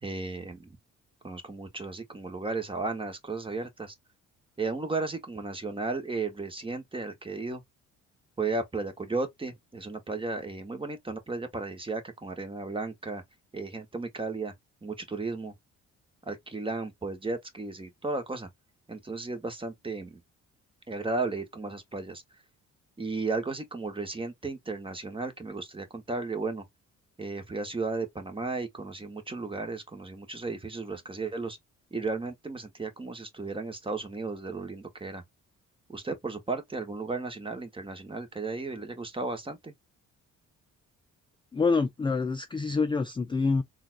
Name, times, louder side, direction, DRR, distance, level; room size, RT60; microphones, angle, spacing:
voice 1, 0.0-0.8 1.2-3.9 4.6-7.6 8.4-13.2 13.5-14.5 14.8-15.5 16.2-18.5 18.9-20.2 20.9-22.2 23.0-26.6 27.2-31.6 31.9-35.2 35.9-39.7, right 3 dB, 15° right, 1.0 m, -34 dB
voice 2, 41.5-43.6, left 4 dB, 15° left, 0.3 m, -26 dB
3.9 x 2.4 x 2.4 m
cardioid pair, 90°, 30 cm